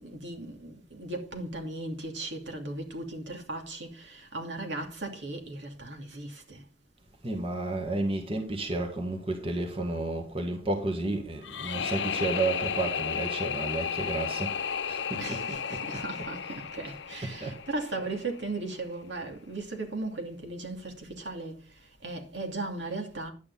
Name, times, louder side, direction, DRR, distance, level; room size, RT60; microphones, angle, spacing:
voice 1, 0.0-6.7 15.2-23.3, right 2 dB, 75° right, 2.8 m, -37 dB
voice 2, 7.2-15.8 16.2-16.6 17.2-17.6, right 2 dB, 30° right, 1.9 m, -32 dB
sound 1, 11.4-18.4, left 7 dB, 75° left, 0.7 m, -33 dB
11.0 x 9.7 x 4.2 m
head